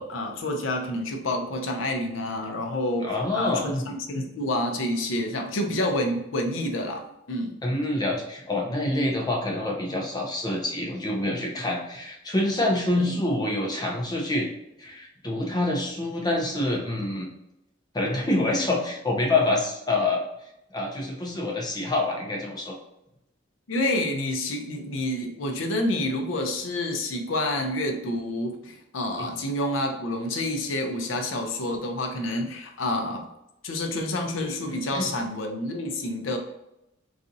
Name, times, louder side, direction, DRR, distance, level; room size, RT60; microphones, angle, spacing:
voice 1, 0.0-7.6 12.9-13.2 23.7-33.3 33.6-36.4, left 1 dB, 80° left, 3 dB, 0.6 m, -28 dB
voice 2, 3.0-3.8 7.6-14.5 14.8-17.3 17.9-20.3 20.7-22.8 29.2-29.3 34.7-35.1, left 2 dB, 20° left, 0 dB, 0.6 m, -26 dB
4.0 x 2.4 x 2.6 m, 0.84 s
head